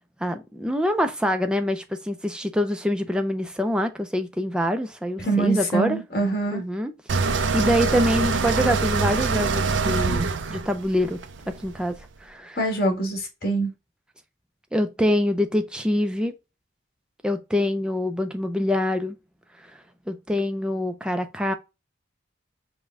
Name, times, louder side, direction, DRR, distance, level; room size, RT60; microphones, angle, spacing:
voice 1, 0.2-6.0 6.5-6.9 7.5-11.2 11.6-12.6 14.7-16.3 17.2-19.2 20.1-21.5, left 1 dB, 5° right, 0.5 m, -25 dB
voice 2, 5.2-6.6 12.6-13.7, right 2 dB, 50° left, 1.9 m, -24 dB
sound 1, 7.1-12.0, right 4 dB, 80° right, 0.5 m, -24 dB
5.3 x 2.2 x 3.5 m
head